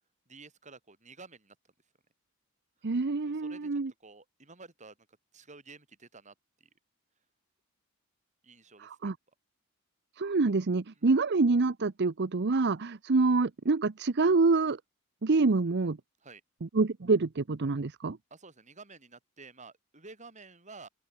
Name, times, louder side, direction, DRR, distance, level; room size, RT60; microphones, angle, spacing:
voice 1, 0.3-1.6 3.3-5.0 5.3-6.3 6.6-6.7 8.4-9.1 10.9-11.1 16.2-16.4 18.3-20.9, right 4 dB, 35° right, 7.3 m, -51 dB
voice 2, 2.8-3.9 8.8-9.1 10.2-14.8 15.2-16.0 16.6-18.2, right 3 dB, 55° right, 0.7 m, -26 dB
open air
head